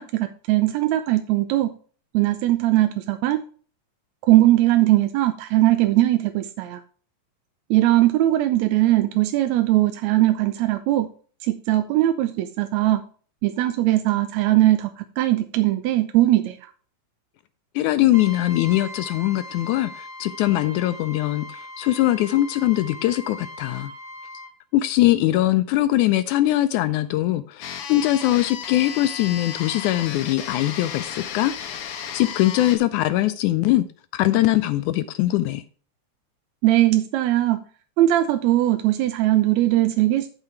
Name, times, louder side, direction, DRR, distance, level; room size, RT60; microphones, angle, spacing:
voice 1, 0.0-1.7 2.1-3.4 4.2-6.8 7.7-11.1 11.4-13.0 13.4-16.7 36.6-37.6 38.0-40.3, right 15 dB, 80° right, 1.7 m, -20 dB
voice 2, 17.8-23.9 24.7-31.5 32.1-33.9 34.1-35.6, left 15 dB, 80° left, 2.0 m, -21 dB
Trumpet, 18.1-24.5, left 1 dB, 50° right, 1.2 m, -39 dB
sound 1, 27.6-32.8, left 8 dB, 60° left, 1.6 m, -34 dB
9.8 x 5.6 x 4.5 m
omnidirectional pair, 3.5 m